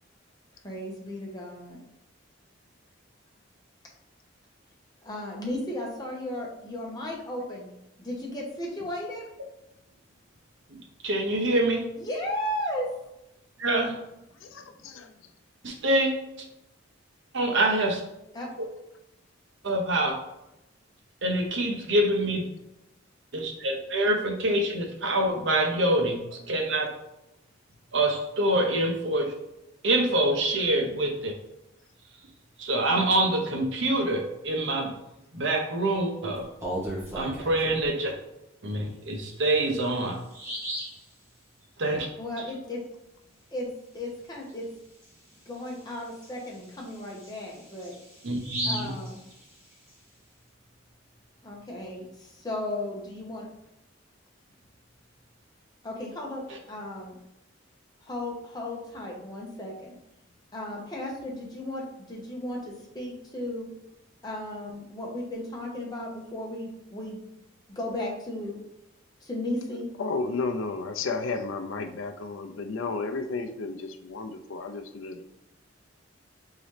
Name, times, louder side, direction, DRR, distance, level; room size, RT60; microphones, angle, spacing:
voice 1, 0.6-1.8 5.0-7.7 8.0-9.2 12.0-12.9 18.3-18.5 42.2-42.8 43.5-43.7 43.9-44.6 45.5-47.9 48.6-49.2 51.4-53.5 55.8-56.4 56.7-57.1 58.0-59.9 60.5-63.7 64.2-67.2 67.7-68.6 69.2-69.9, left 1 dB, 20° left, -3 dB, 1.0 m, -35 dB
voice 2, 11.0-11.9 13.6-14.0 15.6-16.1 17.3-18.0 18.6-18.7 19.6-20.1 21.2-22.4 23.3-26.2 26.5-26.9 27.9-29.3 29.8-31.3 32.6-34.9 35.3-36.4 37.1-38.1 38.6-40.2 41.8-42.1 48.2-48.9, right 1 dB, 65° right, 2 dB, 0.8 m, -25 dB
voice 3, 14.4-15.1 70.0-75.2, left 3 dB, 85° left, 6 dB, 0.5 m, -33 dB
Bird vocalization bird call bird song, 36.4-37.9 39.3-39.4 39.9-40.0 40.3-41.0 44.5-44.6 45.0-45.1 45.7-49.9, right 1 dB, 15° right, 1.4 m, -36 dB
4.0 x 3.8 x 3.2 m, 0.86 s
head